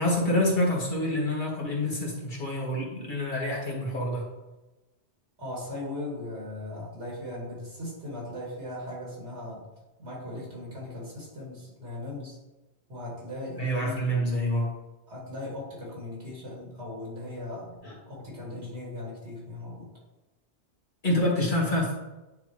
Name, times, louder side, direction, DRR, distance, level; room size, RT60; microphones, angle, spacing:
voice 1, 0.0-4.3 13.6-14.7 17.8-17.9 21.0-21.9, left 1 dB, 50° left, -3 dB, 1.8 m, -27 dB
voice 2, 5.4-9.6 10.0-12.4 12.9-14.3 15.1-17.7 18.1-19.9, left 1 dB, 85° right, -4 dB, 2.8 m, -38 dB
9.3 x 4.5 x 3.1 m, 1.1 s
omnidirectional pair, 1.1 m